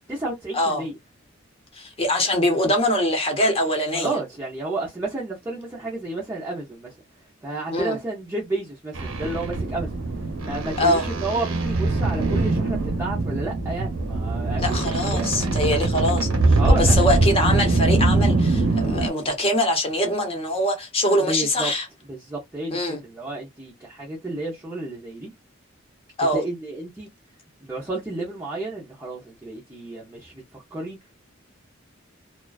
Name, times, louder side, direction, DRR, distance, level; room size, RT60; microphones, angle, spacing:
voice 1, 0.1-1.0 3.9-6.9 7.4-9.9 10.4-15.7 16.6-17.0 21.2-21.7 22.1-25.3 26.3-27.1 27.6-31.0, right 2 dB, 10° right, 0.5 m, -31 dB
voice 2, 1.7-4.1 7.7-8.0 10.8-11.0 14.6-21.9 22.7-23.0 26.2-26.4, left 1 dB, 30° left, 0.8 m, -23 dB
sound 1, 8.9-19.1, right 2 dB, 75° right, 0.7 m, -22 dB
2.4 x 2.2 x 2.3 m
head